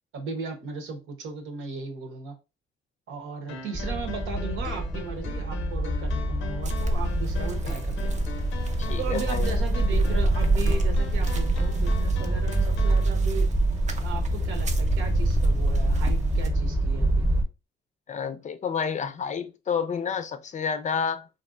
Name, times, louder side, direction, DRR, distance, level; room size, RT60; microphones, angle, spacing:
voice 1, 0.1-2.3 3.1-8.2 9.0-13.5 14.0-17.3, right 4 dB, 80° right, 1.0 m, -36 dB
sound 1, 3.5-13.1, left 6 dB, 80° left, 0.6 m, -41 dB
sound 2, 3.7-17.4, right 1 dB, 10° right, 0.9 m, -26 dB
sound 3, 6.6-16.5, right 1 dB, 35° right, 0.6 m, -28 dB
voice 2, 8.8-9.5 18.1-21.3, left 6 dB, 40° left, 0.4 m, -29 dB
3.2 x 2.6 x 2.5 m
cardioid pair, 90°, 20 cm